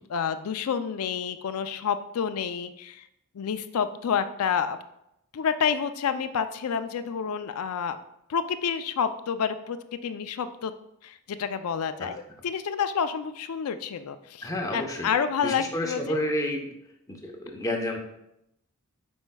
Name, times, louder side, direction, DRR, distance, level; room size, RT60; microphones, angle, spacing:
voice 1, 0.1-3.1 3.3-4.8 5.3-8.0 8.3-9.8 10.0-10.7 11.0-16.2, left 7 dB, 80° left, 11 dB, 0.4 m, -29 dB
voice 2, 14.4-15.1 15.4-16.7 17.1-18.0, left 1 dB, 15° left, 1 dB, 0.8 m, -30 dB
7.9 x 5.3 x 2.3 m, 0.80 s
head